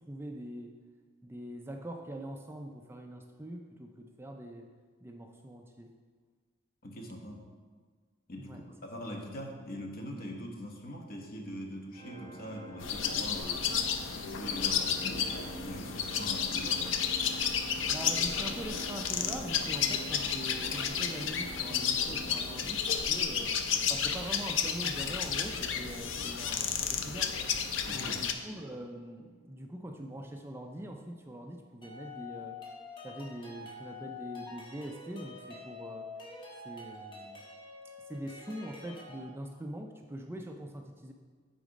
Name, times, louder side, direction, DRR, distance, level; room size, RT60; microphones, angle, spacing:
voice 1, 0.1-0.7 1.2-4.7 5.0-5.9 8.4-8.6 17.9-23.6 23.9-27.4 27.9-32.6 33.0-36.1 36.6-37.4 38.1-41.1, right 1 dB, 10° right, 3 dB, 0.4 m, -43 dB
voice 2, 6.8-7.4 8.3-13.6 14.0-16.8 27.8-28.3, equal, 50° left, 1 dB, 1.0 m, -42 dB
Organ, 11.9-23.1, right 3 dB, 35° right, 1.8 m, -47 dB
sound 1, 12.8-28.3, left 7 dB, 75° left, 0.6 m, -32 dB
sound 2, 31.8-39.2, left 3 dB, 25° left, 1.3 m, -46 dB
8.4 x 4.1 x 5.1 m, 1.5 s
head